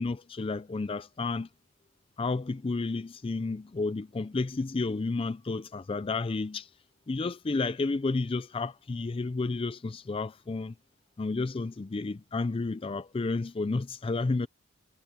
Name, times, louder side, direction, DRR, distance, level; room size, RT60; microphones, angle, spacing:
voice 1, 0.0-1.5 2.2-6.7 7.1-10.7 11.2-14.5, left 3 dB, 25° left, 0.4 m, -31 dB
head